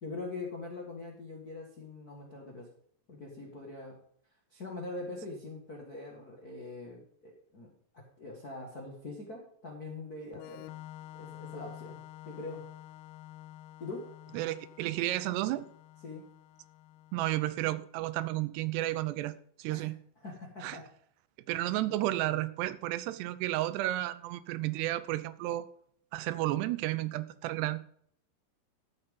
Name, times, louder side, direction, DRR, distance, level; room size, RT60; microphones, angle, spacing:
voice 1, 0.0-2.7 3.1-3.9 4.5-7.7 8.2-10.6 11.1-12.0 12.2-12.6 13.8-14.1 16.0-16.2 19.7-19.9 20.2-20.8, left 3 dB, 55° left, 1.0 m, -43 dB
Organ, 10.3-17.9, left 14 dB, 80° left, 2.5 m, -49 dB
voice 2, 14.3-15.7 17.1-20.0 20.6-20.8 21.5-25.7 26.1-27.8, right 16 dB, 85° right, 2.7 m, -32 dB
13.5 x 5.8 x 5.5 m
omnidirectional pair, 4.9 m